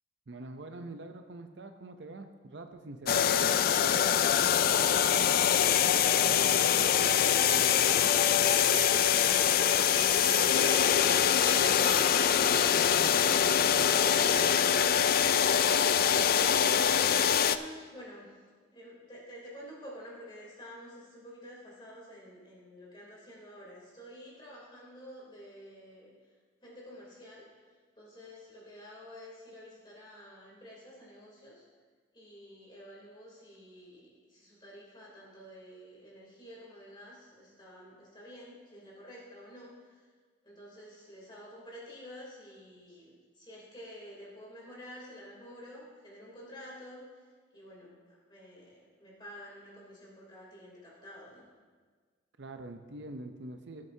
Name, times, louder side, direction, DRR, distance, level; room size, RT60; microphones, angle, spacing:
voice 1, 0.3-3.6 11.9-14.5 52.4-53.9, right 2 dB, 60° right, 7 dB, 0.6 m, -45 dB
sound 1, 3.1-17.6, left 8 dB, 50° left, 0.3 m, -24 dB
sound 2, 6.0-6.2 6.8-7.0 7.2-8.0 8.4-9.4 9.9-11.1 11.4-12.7, right 4 dB, 20° right, 2.5 m, -41 dB
voice 2, 16.5-18.4 18.7-26.1 26.6-27.5 28.0-31.6 32.1-40.1 40.4-47.2 47.5-51.4, equal, 25° left, -4 dB, 3.2 m, -49 dB
19.0 x 7.7 x 2.8 m, 1.5 s
head